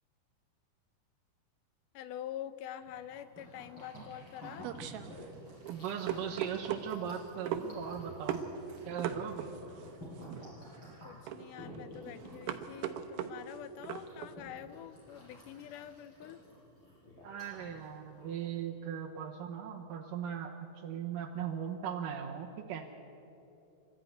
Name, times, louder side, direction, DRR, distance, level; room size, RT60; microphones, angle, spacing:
voice 1, 1.9-4.7 11.0-16.5, left 11 dB, 80° left, 13 dB, 1.9 m, -46 dB
sound 1, 2.8-18.6, equal, 30° left, 8.0 m, -52 dB
sound 2, 3.9-14.3, right 9 dB, 85° right, 2.9 m, -40 dB
voice 2, 5.7-8.4 8.9-9.5 17.2-22.8, right 8 dB, 70° right, -1 dB, 2.6 m, -39 dB
25.5 x 14.0 x 9.6 m, 2.9 s
omnidirectional pair, 4.3 m